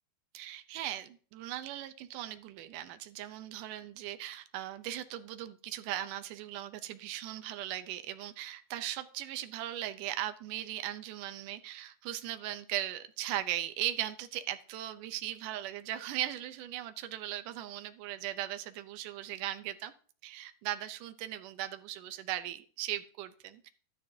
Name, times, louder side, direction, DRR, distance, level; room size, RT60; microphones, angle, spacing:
voice 1, 0.3-19.9 20.2-23.7, right 13 dB, 80° right, 9 dB, 1.9 m, -38 dB
13.0 x 11.0 x 2.8 m, 0.41 s
omnidirectional pair, 4.6 m